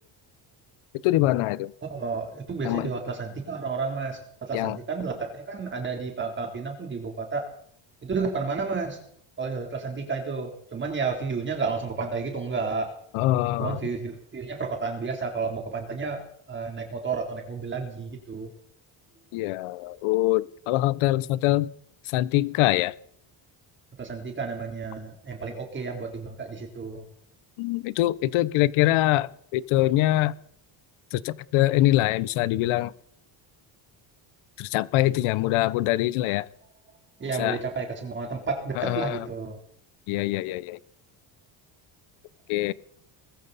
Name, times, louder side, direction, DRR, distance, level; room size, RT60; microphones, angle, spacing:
voice 1, 1.0-1.7 2.6-2.9 4.5-4.8 13.1-13.8 19.3-21.7 22.1-22.9 27.6-30.3 31.1-32.9 34.6-36.5 37.4-37.6 38.8-39.2 40.1-40.8 42.5-42.7, left 16 dB, 90° left, 19 dB, 0.9 m, -24 dB
voice 2, 1.8-7.5 8.0-9.0 9.4-12.9 13.6-16.2 16.5-18.5 24.0-27.1 37.2-39.6, right 4 dB, 25° right, 3 dB, 3.5 m, -31 dB
21.0 x 14.5 x 4.2 m, 0.65 s
cardioid pair, 175°, 48 cm